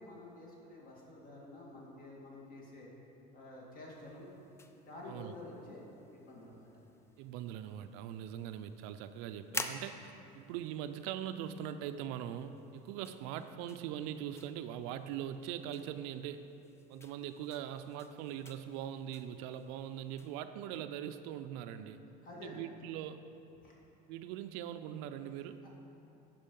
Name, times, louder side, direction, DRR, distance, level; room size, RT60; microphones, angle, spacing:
voice 1, 0.0-2.9 3.3-4.3 4.9-5.8 6.1-6.7 22.2-22.6 23.6-23.7 25.6-25.7, left 2 dB, 40° left, -3 dB, 2.1 m, -50 dB
sound 1, 3.9-20.4, left 3 dB, 10° left, 0.4 m, -51 dB
voice 2, 7.2-16.4 16.9-22.0 22.4-23.2 24.1-25.6, right 10 dB, 70° right, 10 dB, 0.5 m, -41 dB
9.9 x 5.5 x 5.3 m, 2.8 s
supercardioid pair, 130°, 21 cm